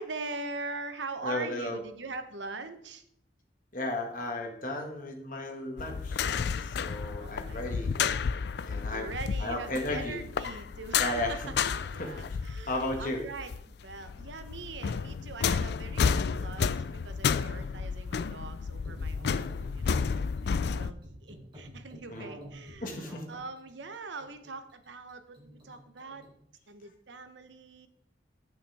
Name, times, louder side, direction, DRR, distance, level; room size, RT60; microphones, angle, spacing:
voice 1, 0.0-3.0 7.2-7.9 8.9-11.5 11.9-20.1 20.4-26.3 26.7-27.9, right 3 dB, 80° right, 9 dB, 0.9 m, -42 dB
voice 2, 1.2-1.8 3.7-7.9 8.6-9.1 9.4-10.2 11.0-11.5 12.0-12.1 12.7-13.2 22.1-22.3 22.8-23.2, left 1 dB, 45° left, 2 dB, 1.7 m, -34 dB
sound 1, 5.8-13.6 13.9-20.9, left 6 dB, 60° left, 0.4 m, -31 dB
sound 2, 18.8-26.3, equal, 30° right, 3.7 m, -48 dB
9.7 x 8.7 x 3.5 m, 0.71 s
head